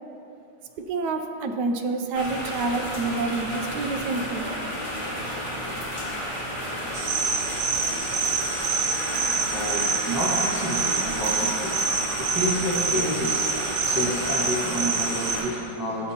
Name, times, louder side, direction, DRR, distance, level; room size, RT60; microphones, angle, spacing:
voice 1, 0.9-4.5, right 3 dB, 70° right, 5 dB, 1.1 m, -28 dB
sound 1, 2.1-15.4, equal, 25° left, 1.8 m, -32 dB
sound 2, 6.9-15.4, right 5 dB, 85° right, 1.7 m, -27 dB
voice 2, 8.8-16.1, equal, 10° right, -7 dB, 1.4 m, -30 dB
13.5 x 7.5 x 2.9 m, 2.6 s
omnidirectional pair, 2.1 m